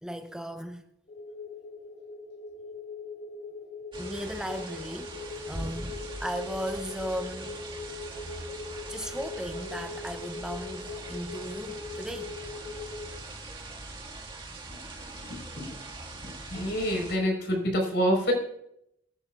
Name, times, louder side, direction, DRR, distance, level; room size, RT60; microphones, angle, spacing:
voice 1, 0.0-0.8 4.0-5.2 5.5-7.6 8.9-12.3, equal, 5° right, 0.5 m, -36 dB
sound 1, 1.1-13.1, left 3 dB, 45° left, 1.3 m, -41 dB
sound 2, 3.9-17.2, right 2 dB, 25° right, 1.9 m, -42 dB
voice 2, 14.7-15.7 16.2-18.3, equal, 65° left, 4.5 m, -28 dB
22.5 x 10.5 x 2.4 m
head